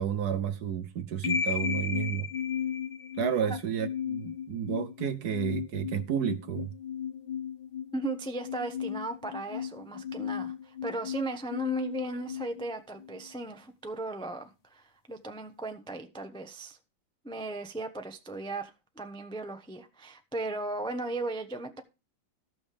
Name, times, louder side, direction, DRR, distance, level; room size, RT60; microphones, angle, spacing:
voice 1, 0.0-2.3 3.2-6.7, right 9 dB, 65° right, 1.1 m, -31 dB
sound 1, 1.2-13.3, left 8 dB, 50° left, 0.7 m, -35 dB
voice 2, 7.9-16.8 17.2-21.8, right 2 dB, 5° left, 0.4 m, -36 dB
14.0 x 6.2 x 5.0 m
omnidirectional pair, 2.1 m